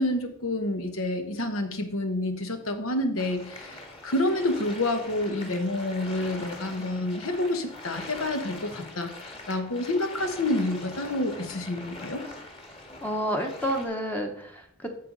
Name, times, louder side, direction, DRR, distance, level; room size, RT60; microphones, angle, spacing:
voice 1, 0.0-3.7 4.0-12.2, left 1 dB, 85° left, 7 dB, 1.2 m, -28 dB
sound 1, 3.2-13.9, left 2 dB, 30° left, 1.7 m, -43 dB
voice 2, 13.0-15.0, equal, 10° left, 3 dB, 0.8 m, -30 dB
9.8 x 6.9 x 3.9 m, 0.68 s
head